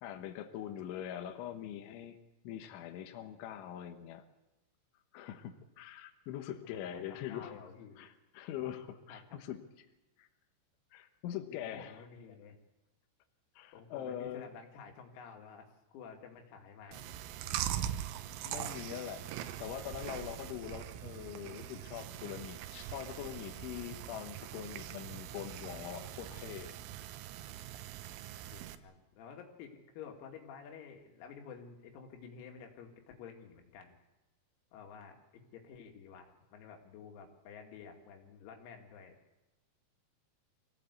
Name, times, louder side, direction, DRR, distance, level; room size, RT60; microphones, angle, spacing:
voice 1, 0.0-2.2 2.4-4.2 5.1-7.6 8.0-9.6 10.2-10.3 10.9-12.0 13.6-14.5 18.4-27.2, left 10 dB, 75° left, 6 dB, 3.4 m, -43 dB
voice 2, 7.1-8.1 9.1-9.4 11.5-12.6 13.7-17.2 18.7-19.0 28.5-34.0 34.7-35.2 35.5-36.3 36.5-39.2, left 6 dB, 90° left, 2 dB, 5.2 m, -51 dB
Chewing mastication, 16.9-28.8, right 11 dB, 75° right, 3.2 m, -42 dB
24.5 x 17.0 x 8.3 m, 1.0 s
omnidirectional pair, 6.0 m